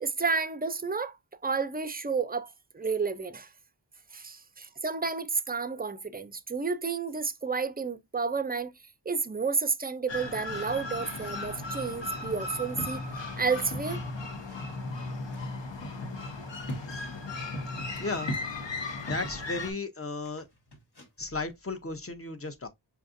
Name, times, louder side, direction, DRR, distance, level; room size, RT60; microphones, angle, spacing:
voice 1, 0.0-1.1 1.4-3.5 4.1-8.7 9.1-13.0 13.4-14.0, right 5 dB, 20° right, 0.4 m, -31 dB
sound 1, 10.1-19.7, left 2 dB, 75° left, 0.9 m, -36 dB
sound 2, 10.5-10.7 11.0-11.5 12.3-12.4 12.8-14.1 14.4-14.7 15.3-19.4 20.2-21.1 21.4-21.5, equal, 60° left, 1.2 m, -41 dB
voice 2, 18.0-18.3 19.0-20.5 21.2-22.7, left 3 dB, 30° left, 0.7 m, -35 dB
5.6 x 2.4 x 2.5 m
wide cardioid pair, 55°, 44 cm